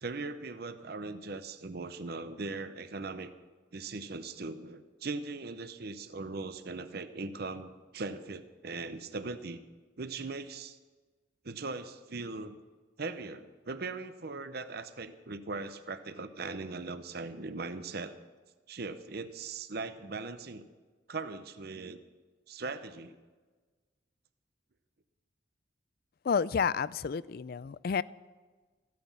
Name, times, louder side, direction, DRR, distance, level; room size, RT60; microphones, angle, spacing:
voice 1, 0.0-3.3 3.7-9.6 10.0-10.8 11.4-12.6 13.0-18.2 18.7-20.7 21.1-22.0 22.5-23.2, right 3 dB, 55° right, 11 dB, 0.7 m, -39 dB
voice 2, 26.2-28.0, left 6 dB, 50° left, 19 dB, 0.4 m, -30 dB
15.5 x 9.4 x 7.2 m, 1.3 s
head